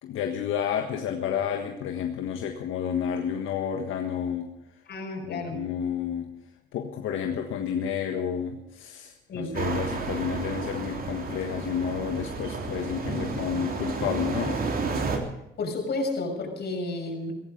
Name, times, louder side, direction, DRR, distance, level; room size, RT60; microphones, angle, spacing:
voice 1, 0.0-4.5 5.3-6.3 6.7-14.6, left 8 dB, 85° left, 4 dB, 1.6 m, -30 dB
voice 2, 4.9-5.6 9.3-9.5 15.6-17.3, left 2 dB, 55° left, 2 dB, 6.2 m, -31 dB
sound 1, 9.5-15.2, right 4 dB, 50° right, 3.5 m, -31 dB
17.0 x 15.5 x 5.3 m, 0.88 s
cardioid pair, 90°, 20 cm